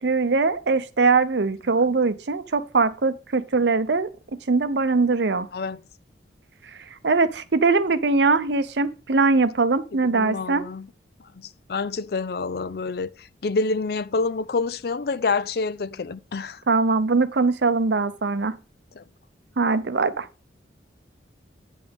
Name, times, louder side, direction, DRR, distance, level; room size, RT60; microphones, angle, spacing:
voice 1, 0.0-5.5 6.6-6.8 7.0-10.6 16.7-18.6 19.6-20.3, right 4 dB, 65° right, 0.7 m, -21 dB
voice 2, 10.1-10.9 11.3-16.6 19.0-19.1, left 4 dB, 55° left, 0.4 m, -27 dB
9.2 x 7.1 x 3.5 m
head